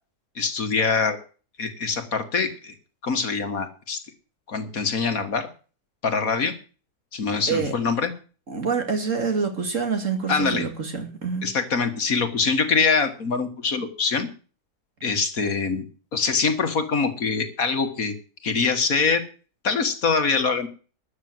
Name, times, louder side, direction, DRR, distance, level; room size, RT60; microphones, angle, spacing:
voice 1, 0.4-1.2 1.6-2.7 3.0-4.0 4.5-5.5 6.0-6.5 7.1-8.1 10.3-10.7 11.4-14.3 15.0-15.9 16.1-18.1 18.4-19.2 19.6-20.7, left 5 dB, 60° left, 8 dB, 2.1 m, -24 dB
voice 2, 8.5-11.5, right 5 dB, 50° right, 6 dB, 2.9 m, -26 dB
13.0 x 8.7 x 7.8 m, 0.38 s
omnidirectional pair, 1.7 m